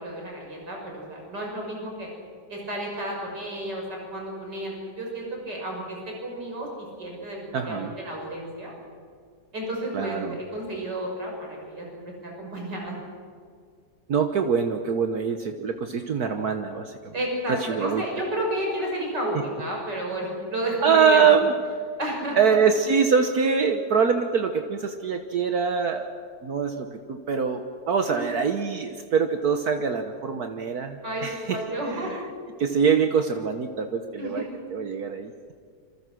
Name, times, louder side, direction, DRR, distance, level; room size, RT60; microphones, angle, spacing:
voice 1, 0.0-2.1 2.5-8.7 9.5-13.0 17.1-21.3 22.0-22.5 28.0-28.4 31.0-32.1 34.1-34.6, right 1 dB, 90° right, -1 dB, 6.8 m, -32 dB
voice 2, 7.5-7.9 9.9-10.4 14.1-17.1 17.5-18.0 20.8-21.5 22.4-26.1 26.4-31.6 32.0-32.2 32.6-34.4 34.7-35.5, right 6 dB, 65° right, 6 dB, 1.7 m, -24 dB
27.5 x 26.5 x 6.3 m, 2.1 s
omnidirectional pair, 1.8 m